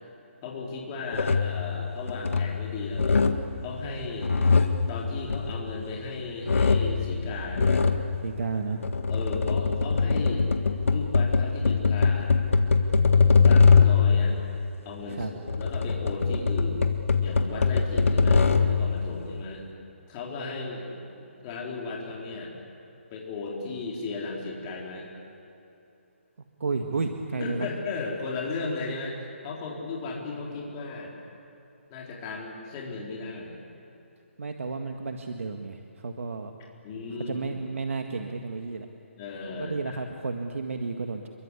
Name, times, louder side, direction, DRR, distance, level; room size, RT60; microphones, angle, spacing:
voice 1, 0.4-3.2 3.6-4.3 4.9-7.8 9.1-10.5 10.9-12.3 13.4-14.4 14.8-16.8 17.2-19.6 20.1-20.8 21.1-22.5 23.1-25.1 27.4-29.2 29.4-31.1 31.9-33.6 36.8-37.4 39.2-40.0, left 3 dB, 20° left, -3 dB, 4.2 m, -35 dB
sound 1, 1.1-1.6 2.0-2.6 2.9-3.5 4.0-6.1 6.4-7.0 7.5-8.1 8.7-14.1 15.1-18.8, left 5 dB, 75° left, 1.9 m, -22 dB
voice 2, 8.2-8.9 15.1-15.3 26.6-27.7 34.4-36.5 37.2-38.9 39.6-41.3, right 4 dB, 75° right, 4 dB, 1.8 m, -32 dB
28.0 x 23.0 x 8.4 m, 2.9 s
hypercardioid pair, 165°, 7 cm